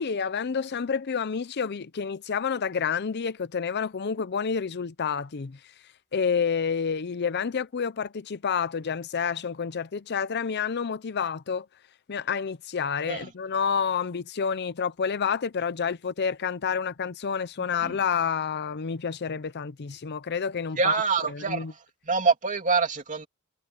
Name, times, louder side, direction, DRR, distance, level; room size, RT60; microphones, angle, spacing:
voice 1, 0.0-5.6 6.1-11.7 12.1-21.0 21.3-21.7, left 6 dB, 50° left, 0.6 m, -29 dB
voice 2, 20.7-21.7 22.0-23.3, right 4 dB, 35° right, 2.9 m, -25 dB
head